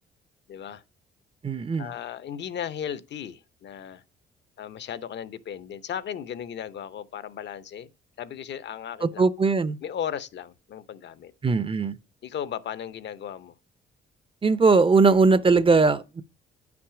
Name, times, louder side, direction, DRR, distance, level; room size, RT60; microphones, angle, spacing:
voice 1, 0.5-0.8 1.8-4.0 4.6-7.9 8.2-9.2 9.8-11.3 12.2-13.5, left 9 dB, 60° left, 0.8 m, -36 dB
voice 2, 1.4-1.9 9.0-9.8 11.4-12.0 14.4-16.2, right 4 dB, 25° right, 0.6 m, -20 dB
9.5 x 6.0 x 4.9 m
cardioid pair, 90°, 20 cm